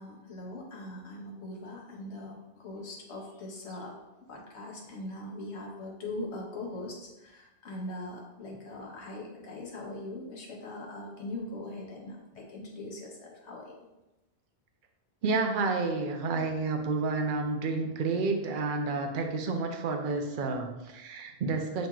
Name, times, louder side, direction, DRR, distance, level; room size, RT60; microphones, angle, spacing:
voice 1, 0.0-3.9 4.3-13.8, left 2 dB, 75° left, -2 dB, 1.2 m, -41 dB
voice 2, 15.2-21.9, right 3 dB, 55° right, 4 dB, 0.7 m, -30 dB
7.5 x 3.0 x 2.3 m, 0.98 s
omnidirectional pair, 1.2 m